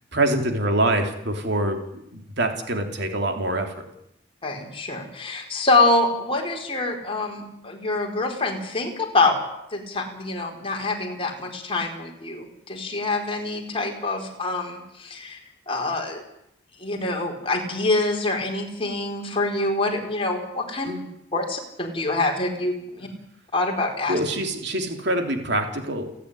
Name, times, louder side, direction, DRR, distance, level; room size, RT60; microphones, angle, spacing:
voice 1, 0.1-3.9 20.9-21.1 24.1-26.1, right 1 dB, 60° right, 5 dB, 3.3 m, -25 dB
voice 2, 4.4-9.4 9.7-15.4 15.7-16.2 16.8-20.9 21.3-23.1 23.5-24.2, left 2 dB, 30° left, 1 dB, 4.3 m, -25 dB
29.5 x 10.0 x 10.0 m, 0.79 s
head